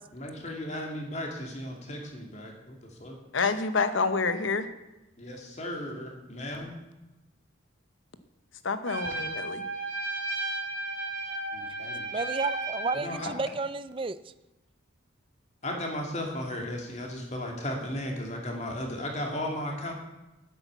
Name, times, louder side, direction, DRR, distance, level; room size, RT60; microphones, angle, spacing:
voice 1, 0.1-3.2 5.2-6.7 11.5-12.1 12.9-13.3 15.6-19.9, left 1 dB, 35° left, 1 dB, 2.5 m, -35 dB
voice 2, 3.3-4.7 8.6-9.6, left 4 dB, 75° left, 11 dB, 1.0 m, -27 dB
Trumpet, 8.8-13.1, right 2 dB, 65° right, 3.1 m, -34 dB
voice 3, 12.1-14.2, right 4 dB, 25° right, 15 dB, 0.4 m, -31 dB
10.0 x 8.8 x 8.1 m, 1.0 s
head